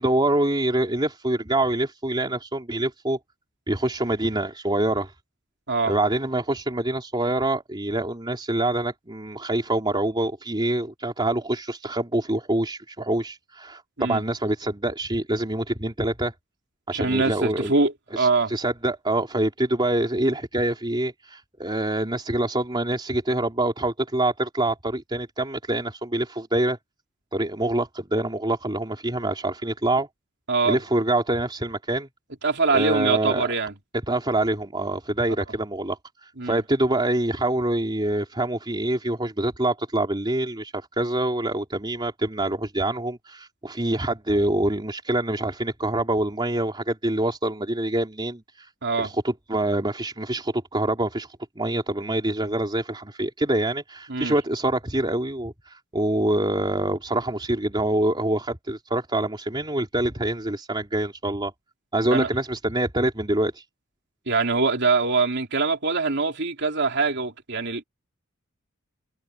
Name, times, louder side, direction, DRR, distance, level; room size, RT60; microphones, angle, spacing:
voice 1, 0.0-3.2 3.7-5.1 5.8-16.3 16.9-17.7 18.1-26.8 27.3-30.1 30.6-32.1 32.7-33.5 34.1-48.7 49.0-61.5 61.9-63.6, right 1 dB, 25° right, 3.3 m, -25 dB
voice 2, 16.9-18.5 30.5-30.8 32.4-33.7 36.4-36.6 48.8-49.1 54.1-54.3 62.1-62.3 64.3-67.8, right 4 dB, 60° right, 3.5 m, -23 dB
head